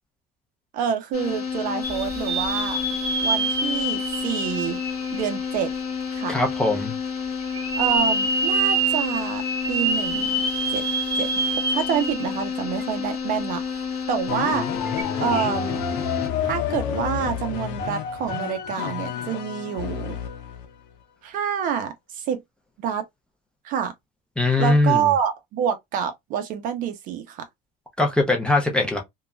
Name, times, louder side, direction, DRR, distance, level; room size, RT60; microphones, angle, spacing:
voice 1, 0.7-2.8 3.2-4.8 5.1-5.7 6.1-6.3 7.8-10.4 10.7-10.8 11.2-14.7 15.2-15.8 16.4-20.2 21.2-22.4 22.8-23.0 23.6-23.9 24.6-27.4, right 8 dB, 45° right, 0.5 m, -27 dB
sound 1, 1.1-16.3, left 6 dB, 35° left, 1.1 m, -30 dB
sound 2, 1.8-5.8 6.3-6.4 7.5-12.4 12.8-12.9 14.9-15.0, right 3 dB, 20° right, 1.4 m, -26 dB
voice 2, 6.3-6.9 24.4-25.1 28.0-29.0, left 2 dB, 5° left, 0.5 m, -21 dB
sound 3, 14.3-20.8, left 8 dB, 70° left, 0.7 m, -30 dB
2.9 x 2.2 x 2.4 m
cardioid pair, 160°, 19 cm